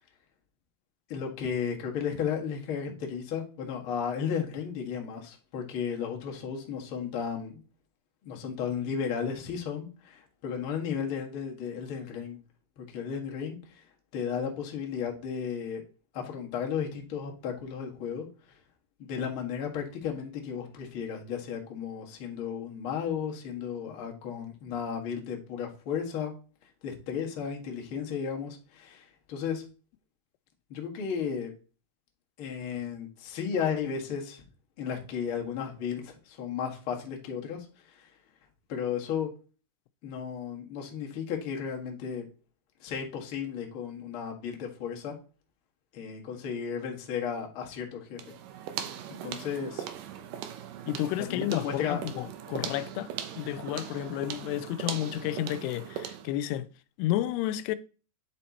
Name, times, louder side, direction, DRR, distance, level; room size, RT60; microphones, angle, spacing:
voice 1, 1.1-7.6 8.2-12.4 12.8-13.8 14.1-15.8 16.1-18.3 19.0-26.3 26.8-29.6 30.7-31.5 32.4-34.4 34.8-37.7 37.9-38.1 38.7-39.3 40.0-42.2 42.8-45.1 45.9-48.2 49.2-49.9 51.2-52.0, left 7 dB, 50° left, 1.6 m, -34 dB
sound 1, 48.2-56.4, right 9 dB, 75° right, 2.0 m, -39 dB
voice 2, 50.9-53.1 53.4-56.7 57.0-57.8, left 13 dB, 90° left, 2.6 m, -31 dB
9.9 x 4.4 x 4.2 m
omnidirectional pair, 4.6 m